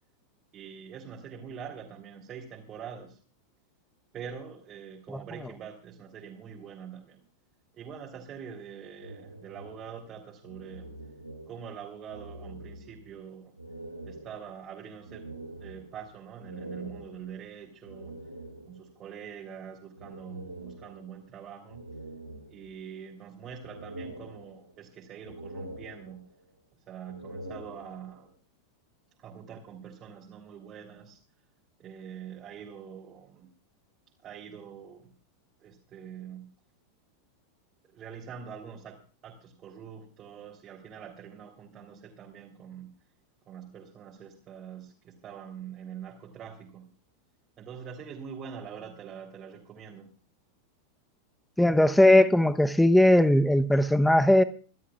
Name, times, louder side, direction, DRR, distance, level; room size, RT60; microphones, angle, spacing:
voice 1, 0.5-3.2 4.1-7.2 7.7-10.9 11.5-13.6 14.1-15.3 15.6-18.2 18.7-21.8 22.5-26.3 26.9-28.3 29.2-31.2 31.8-33.5 34.2-35.1 35.6-36.5 37.9-43.0 43.5-46.9 47.6-50.1, right 7 dB, 30° right, 3.5 m, -44 dB
sound 1, 9.0-11.8 12.0-13.2 13.6-19.0 20.0-21.3 21.7-23.0 23.4-24.9 25.2-26.5 27.0-28.3, right 1 dB, 90° right, 3.5 m, -45 dB
voice 2, 51.6-54.4, left 1 dB, 5° left, 0.9 m, -19 dB
27.5 x 12.5 x 2.4 m
figure-of-eight pair, 90°, 0 cm